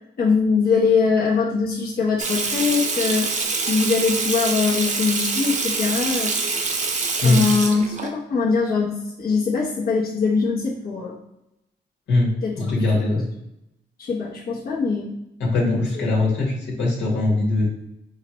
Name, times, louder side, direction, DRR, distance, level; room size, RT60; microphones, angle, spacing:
voice 1, 0.2-3.3 3.7-6.3 7.2-11.1 12.4-12.8 14.0-15.1 15.9-16.0, left 5 dB, 55° left, -5 dB, 1.0 m, -22 dB
Water tap faucet / Sink (filling or washing), 2.2-8.1, right 4 dB, 40° right, 0.6 m, -25 dB
voice 2, 12.1-13.3 15.4-17.7, left 2 dB, 90° left, -4 dB, 1.6 m, -21 dB
4.9 x 3.0 x 3.0 m, 0.87 s
cardioid pair, 95°, 18 cm